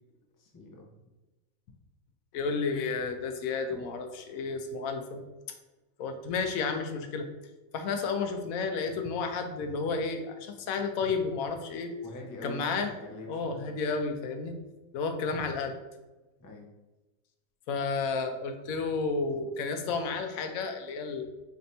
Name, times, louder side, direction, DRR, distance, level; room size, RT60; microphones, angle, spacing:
voice 1, 0.4-0.9 3.7-3.8 12.0-13.8 16.4-16.7, left 2 dB, 30° left, -1 dB, 0.4 m, -45 dB
voice 2, 2.3-5.2 6.0-7.3 7.7-12.0 12.4-12.9 13.3-14.6 14.9-15.8 17.7-21.3, left 4 dB, 85° left, 6 dB, 1.0 m, -31 dB
3.3 x 2.6 x 4.2 m, 1.1 s
omnidirectional pair, 1.4 m